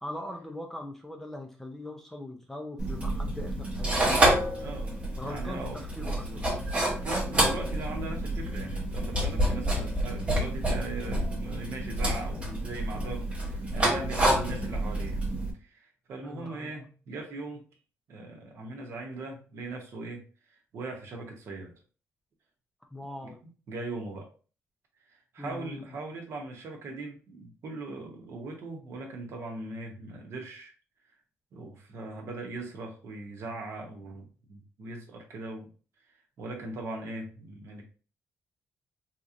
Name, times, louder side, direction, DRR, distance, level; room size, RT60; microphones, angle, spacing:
voice 1, 0.0-4.5 5.2-6.6 12.9-13.2 16.2-16.7 22.9-23.4 25.4-25.8, left 1 dB, 5° left, 3 dB, 0.4 m, -41 dB
sound 1, 2.8-15.5, right 1 dB, 20° right, 0.8 m, -28 dB
voice 2, 4.6-6.4 6.7-15.2 15.6-17.6 18.1-21.7 23.2-24.3 25.1-30.7 31.5-35.7 36.4-37.8, right 2 dB, 55° right, 2 dB, 0.9 m, -40 dB
3.8 x 2.9 x 2.5 m, 0.37 s
cardioid pair, 165°, 5 cm